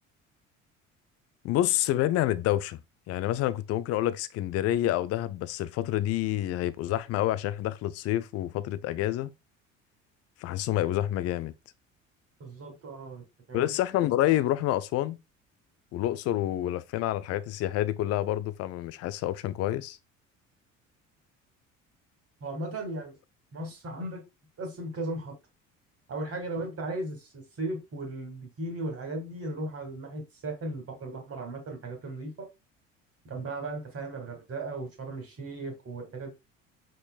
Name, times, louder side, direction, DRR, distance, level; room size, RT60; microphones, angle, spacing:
voice 1, 1.4-2.8 3.1-9.3 10.4-11.5 13.5-15.2 15.9-20.0, left 13 dB, 40° left, 0.4 m, -28 dB
voice 2, 12.4-13.8 22.4-23.2 23.5-24.2 24.6-25.3 26.1-32.5 33.2-36.3, right 2 dB, 35° right, 1.9 m, -36 dB
5.0 x 4.4 x 2.3 m
hypercardioid pair, 60°, 39 cm